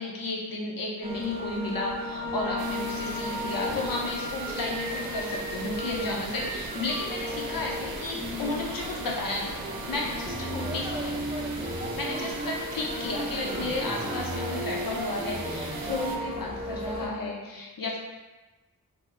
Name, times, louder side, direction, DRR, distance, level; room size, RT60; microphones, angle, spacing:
voice 1, 0.0-9.6 9.9-11.2 11.9-18.0, left 2 dB, 70° left, -2 dB, 0.7 m, -33 dB
sound 1, 1.0-17.1, equal, 15° right, 0.6 m, -34 dB
sound 2, 2.6-16.2, right 4 dB, 80° right, 0.5 m, -40 dB
3.4 x 2.0 x 3.4 m, 1.2 s
wide cardioid pair, 60°, 36 cm